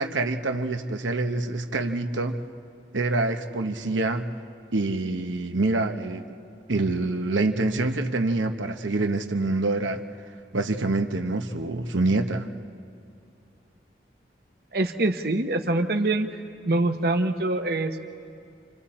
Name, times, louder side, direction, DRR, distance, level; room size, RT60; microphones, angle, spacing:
voice 1, 0.0-2.4 2.9-4.3 4.7-6.2 6.7-10.0 10.5-12.5, right 2 dB, 85° right, 5 dB, 1.0 m, -26 dB
voice 2, 14.7-16.4 16.7-18.0, right 2 dB, 55° right, 5 dB, 0.9 m, -24 dB
29.5 x 26.0 x 4.3 m, 2.6 s
head